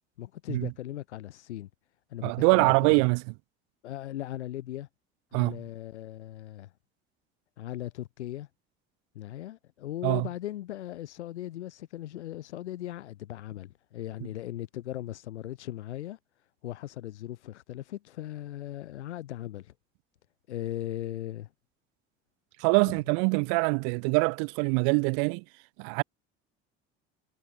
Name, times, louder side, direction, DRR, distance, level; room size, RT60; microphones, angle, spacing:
voice 1, 0.2-1.7 2.1-2.7 3.8-4.9 5.3-6.7 7.6-8.5 9.1-16.2 16.6-19.7 20.5-21.5 22.8-22.9, left 13 dB, 90° left, 2.7 m, -38 dB
voice 2, 2.2-3.2 5.3-5.6 10.0-10.3 22.6-25.4 25.8-26.0, right 40 dB or more, 75° right, 2.6 m, -24 dB
hypercardioid pair, 70°, 34 cm